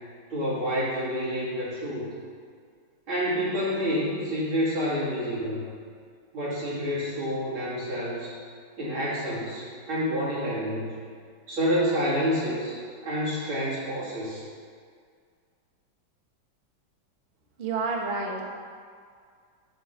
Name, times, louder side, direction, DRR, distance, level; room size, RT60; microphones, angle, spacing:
voice 1, 0.3-2.1 3.1-5.6 6.3-8.3 8.8-11.0 11.5-14.4, equal, 85° right, -9 dB, 3.4 m, -28 dB
voice 2, 17.6-18.4, right 4 dB, 40° right, 0 dB, 0.9 m, -29 dB
9.1 x 3.9 x 7.2 m, 2.1 s
omnidirectional pair, 2.2 m